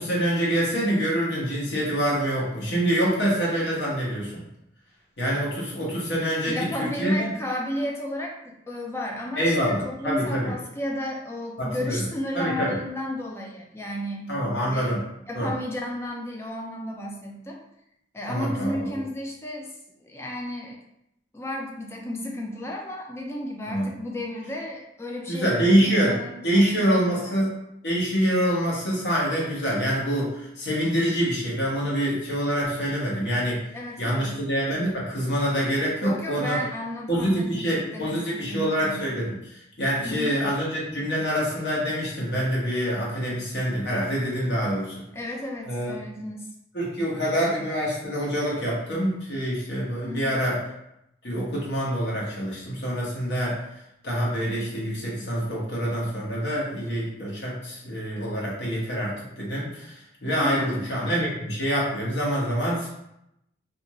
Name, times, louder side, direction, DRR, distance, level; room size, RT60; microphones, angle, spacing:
voice 1, 0.0-4.4 5.2-7.3 9.4-10.5 11.6-12.1 12.3-12.8 14.3-15.0 15.3-15.5 18.3-18.9 23.7-23.9 25.3-26.2 26.4-27.6 27.8-33.6 34.0-36.6 37.1-44.9 45.7-45.9 46.7-50.6 51.2-53.6 54.0-62.9, equal, 70° left, -5 dB, 1.0 m, -26 dB
voice 2, 6.4-14.3 14.7-17.6 18.1-19.7 20.0-20.8 21.3-27.3 33.7-34.4 36.0-39.0 40.0-40.4 45.1-46.5 50.0-50.4 60.3-61.2, left 1 dB, 15° left, 0 dB, 0.4 m, -33 dB
2.5 x 2.5 x 2.9 m, 0.82 s
head